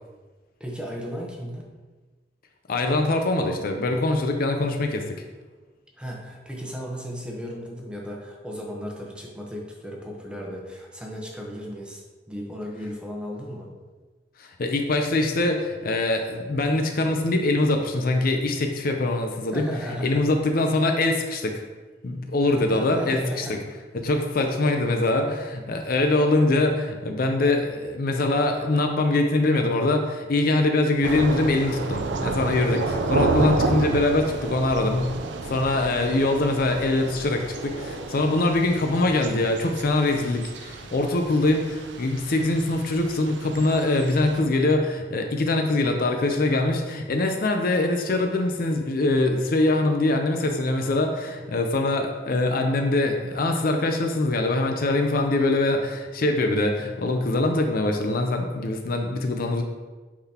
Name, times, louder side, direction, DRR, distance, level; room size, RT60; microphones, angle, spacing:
voice 1, 0.6-1.6 6.0-12.0 12.3-13.7 19.5-20.4 22.4-23.6, equal, 5° right, -2 dB, 0.9 m, -35 dB
voice 2, 2.7-5.0 14.4-19.7 20.0-21.6 22.0-23.6 23.9-35.1 35.5-59.6, left 2 dB, 55° left, 4 dB, 0.5 m, -23 dB
Thunder / Rain, 31.0-44.4, right 3 dB, 90° right, 0.5 m, -31 dB
8.5 x 4.0 x 2.8 m, 1.3 s
head